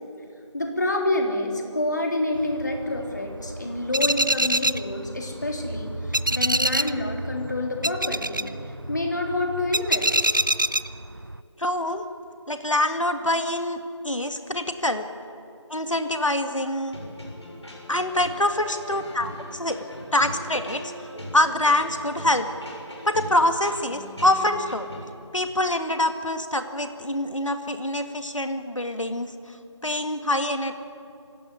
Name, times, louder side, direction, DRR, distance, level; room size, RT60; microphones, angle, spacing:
voice 1, 0.5-8.5 8.9-10.2, left 2 dB, 35° left, 2 dB, 3.4 m, -28 dB
sound 1, 2.3-11.4, right 1 dB, 40° right, 0.6 m, -27 dB
voice 2, 11.6-12.1 12.5-15.1 15.7-17.0 17.9-19.8 20.1-21.1 21.3-22.5 23.1-24.9 25.3-29.3 29.8-30.7, left 1 dB, 80° left, 7 dB, 2.0 m, -25 dB
sound 2, 16.9-25.1, equal, 60° left, 6.9 m, -40 dB
26.0 x 16.0 x 9.6 m, 2.6 s
figure-of-eight pair, 170°, 16 cm